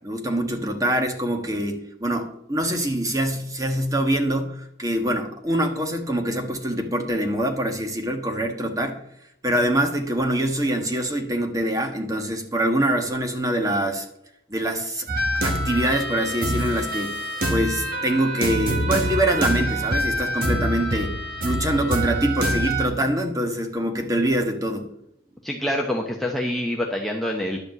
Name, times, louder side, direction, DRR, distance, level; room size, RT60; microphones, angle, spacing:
voice 1, 0.0-9.0 9.4-14.1 14.5-15.1 15.4-17.1 17.5-24.9, right 1 dB, 20° right, 4 dB, 1.4 m, -24 dB
sound 1, 15.1-22.9, equal, 50° right, 2.0 m, -25 dB
voice 2, 25.4-27.6, left 1 dB, ahead, 0 dB, 0.8 m, -26 dB
11.0 x 5.1 x 7.8 m, 0.78 s
head